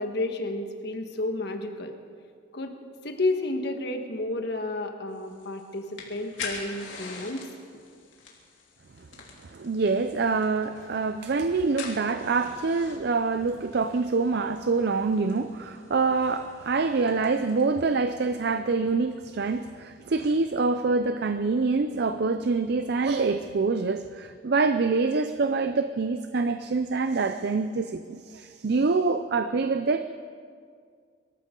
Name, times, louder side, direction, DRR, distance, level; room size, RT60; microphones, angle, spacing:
voice 1, 0.0-1.9 2.5-2.7 3.0-7.5, left 2 dB, 55° left, 1.5 m, -31 dB
sound 1, 5.1-17.6, left 4 dB, 75° left, 3.0 m, -44 dB
voice 2, 9.5-30.0, right 4 dB, 55° right, 0.5 m, -26 dB
25.0 x 14.0 x 3.8 m
head